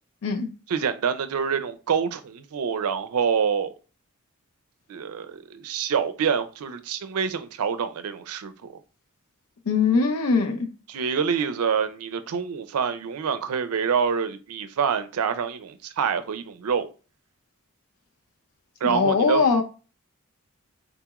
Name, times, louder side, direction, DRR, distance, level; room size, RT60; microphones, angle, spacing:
voice 1, 0.7-3.7 4.9-8.7 10.9-16.9 18.8-19.4, right 6 dB, 90° right, 0.4 m, -26 dB
voice 2, 9.7-10.7 18.8-19.6, left 4 dB, 85° left, 0.5 m, -21 dB
3.9 x 2.9 x 2.3 m
head